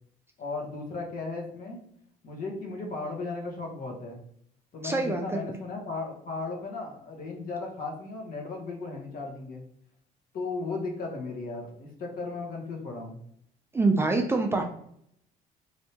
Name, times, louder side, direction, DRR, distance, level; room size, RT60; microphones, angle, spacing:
voice 1, 0.4-1.8 2.2-4.2 4.7-9.6 10.3-13.2, left 3 dB, 55° left, 0 dB, 1.1 m, -36 dB
voice 2, 4.8-5.2 13.7-14.6, right 3 dB, 15° right, 2 dB, 0.4 m, -24 dB
3.3 x 2.6 x 2.8 m, 0.70 s
cardioid pair, 110°, 17 cm